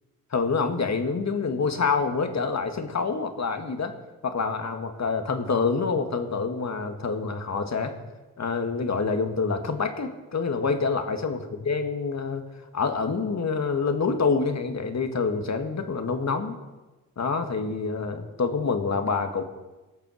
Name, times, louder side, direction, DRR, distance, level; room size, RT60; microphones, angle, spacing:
voice 1, 0.3-3.9 4.2-8.0 8.4-12.5 12.7-16.6 17.2-19.4, left 4 dB, 45° left, 6 dB, 1.8 m, -27 dB
17.0 x 6.8 x 6.4 m, 1.1 s
supercardioid pair, 45°, 36 cm